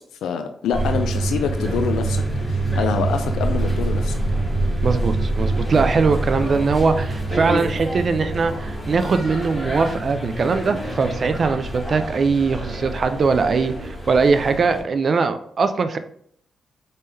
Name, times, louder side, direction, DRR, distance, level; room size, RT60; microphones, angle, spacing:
voice 1, 0.2-4.1, left 6 dB, 90° left, 6 dB, 0.4 m, -26 dB
sound 1, 0.7-14.8, right 2 dB, 5° right, 1.8 m, -25 dB
voice 2, 4.8-16.0, right 4 dB, 55° right, 10 dB, 0.4 m, -21 dB
4.0 x 3.6 x 3.3 m, 0.64 s
cardioid pair, 65°, 0 cm